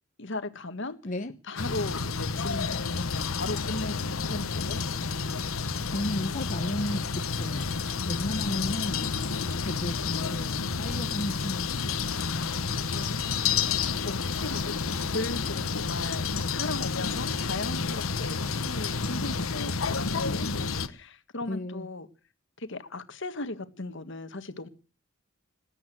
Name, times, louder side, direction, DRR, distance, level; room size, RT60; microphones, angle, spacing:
voice 1, 0.2-1.1 1.4-4.8 12.9-16.3 16.5-22.1 22.6-24.7, left 2 dB, 60° left, 1.6 m, -37 dB
sound 1, 1.6-20.9, left 5 dB, 80° left, 1.1 m, -30 dB
voice 2, 5.9-7.8 8.1-9.1 9.6-12.1 21.5-21.8, left 1 dB, 35° left, 0.9 m, -34 dB
20.0 x 8.9 x 7.7 m
head